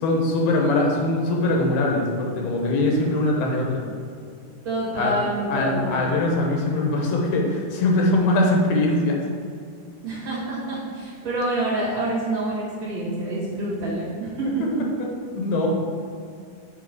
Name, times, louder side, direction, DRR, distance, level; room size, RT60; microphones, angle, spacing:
voice 1, 0.0-3.8 5.0-5.1 5.5-9.2 14.6-14.7 15.3-15.7, left 2 dB, 80° left, 0 dB, 2.9 m, -22 dB
voice 2, 4.6-6.0 10.0-14.8, right 1 dB, 50° right, -8 dB, 2.5 m, -27 dB
7.5 x 3.8 x 6.0 m, 2.2 s
omnidirectional pair, 4.4 m